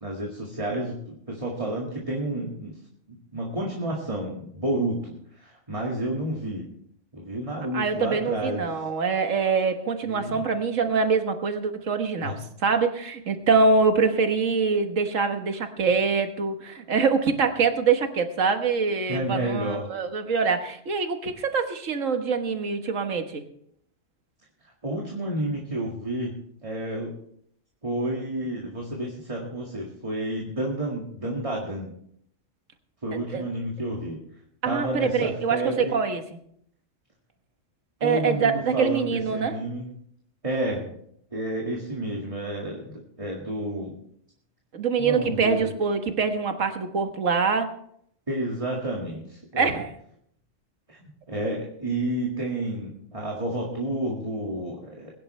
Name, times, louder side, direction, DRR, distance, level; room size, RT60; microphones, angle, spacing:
voice 1, 0.0-2.7 3.1-6.7 7.1-8.7 10.1-10.4 12.2-12.3 19.1-19.9 24.8-26.4 26.6-27.1 27.8-31.9 33.0-34.2 34.6-36.0 38.0-39.9 40.4-40.9 41.3-44.0 45.0-45.7 48.3-49.7 50.9-51.0 51.3-55.1, right 1 dB, 25° right, -2 dB, 2.0 m, -30 dB
voice 2, 7.7-23.4 33.3-33.5 34.6-36.2 38.0-39.6 44.7-47.7 49.6-49.9, right 5 dB, 80° right, 7 dB, 1.7 m, -24 dB
21.5 x 10.5 x 3.3 m, 0.68 s
omnidirectional pair, 1.3 m